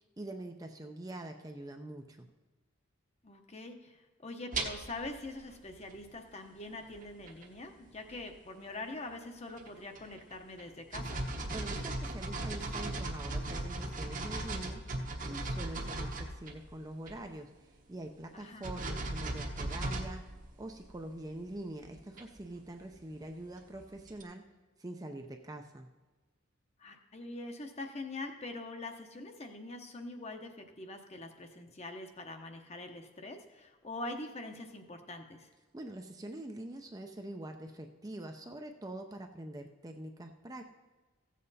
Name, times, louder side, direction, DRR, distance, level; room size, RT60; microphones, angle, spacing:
voice 1, 0.0-2.3 11.5-15.0 15.3-20.3 20.6-24.4 24.8-25.9 35.7-40.6, right 1 dB, 20° right, 4 dB, 0.5 m, -44 dB
voice 2, 3.2-11.2 18.3-18.7 26.8-35.5, left 2 dB, 30° left, 5 dB, 0.9 m, -44 dB
sound 1, 4.5-5.3 5.7-5.9 6.9-7.0 7.3-7.4 7.9-8.4 9.1-9.2 9.6-10.3 10.6-10.7 10.9-16.7 17.1-17.2 18.6-21.0 21.5-24.2, right 2 dB, 40° right, 1.0 m, -38 dB
15.5 x 7.6 x 4.1 m, 1.3 s
head